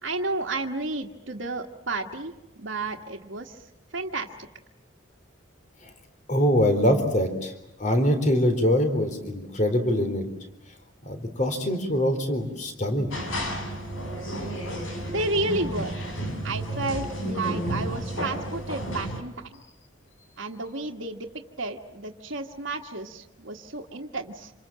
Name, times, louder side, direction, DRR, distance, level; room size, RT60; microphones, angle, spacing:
voice 1, 0.0-4.3 15.1-16.0 16.4-19.6 20.4-21.3 21.6-24.5, right 2 dB, 70° right, -3 dB, 1.6 m, -32 dB
voice 2, 6.3-7.5 7.8-10.2 11.0-13.2, equal, 40° left, 7 dB, 3.8 m, -23 dB
sound 1, 13.1-19.2, right 1 dB, 85° left, 5.3 m, -32 dB
27.5 x 27.5 x 7.6 m, 0.91 s
head